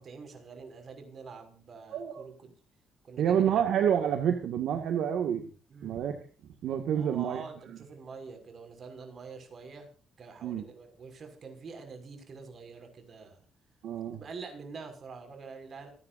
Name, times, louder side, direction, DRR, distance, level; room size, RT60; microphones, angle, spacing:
voice 1, 0.0-2.5 3.0-3.6 5.7-6.0 6.9-9.9 10.2-13.4 14.1-15.9, right 5 dB, 50° right, 5 dB, 6.2 m, -46 dB
voice 2, 1.9-2.3 3.2-5.5 5.8-6.2 6.6-7.4 10.4-10.6 13.8-14.2, right 9 dB, 75° right, 5 dB, 2.0 m, -28 dB
28.0 x 11.5 x 2.7 m, 0.39 s
cardioid pair, 90°, 0 cm